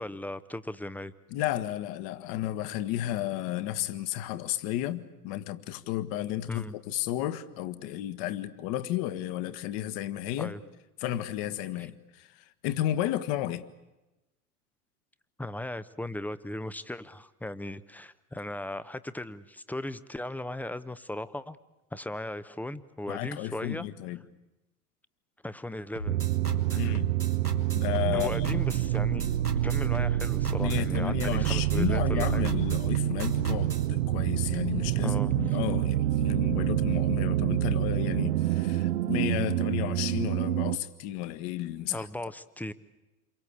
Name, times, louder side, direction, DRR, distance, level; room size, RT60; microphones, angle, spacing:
voice 1, 0.0-1.1 6.5-6.7 10.4-10.6 15.4-21.6 21.9-23.9 25.4-26.2 26.7-26.9 28.1-29.3 29.6-32.5 35.0-35.3 41.9-42.7, left 1 dB, 5° left, 0.9 m, -37 dB
voice 2, 1.3-10.5 11.0-13.6 23.1-24.2 26.7-27.1 27.8-28.6 30.6-42.1, left 13 dB, 45° left, 1.7 m, -32 dB
sound 1, 26.0-33.9, equal, 90° right, 2.6 m, -38 dB
sound 2, 26.1-40.8, right 14 dB, 55° right, 1.0 m, -27 dB
28.5 x 23.0 x 8.6 m
figure-of-eight pair, 85°, 45 cm